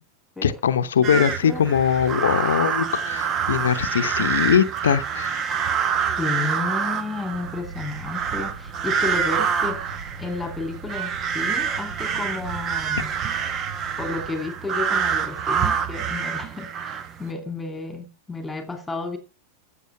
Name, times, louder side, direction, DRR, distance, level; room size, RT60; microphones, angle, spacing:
voice 1, 0.4-5.4, left 8 dB, 65° left, 0.8 m, -21 dB
sound 1, 1.0-17.3, right 7 dB, 30° right, 1.0 m, -26 dB
voice 2, 1.1-1.6 4.2-4.3 6.2-9.8 10.2-13.1 14.0-19.2, left 3 dB, 10° left, 2.7 m, -32 dB
sound 2, 6.8-14.4, right 3 dB, 65° right, 2.7 m, -41 dB
14.5 x 7.3 x 6.0 m
figure-of-eight pair, 90°, 0 cm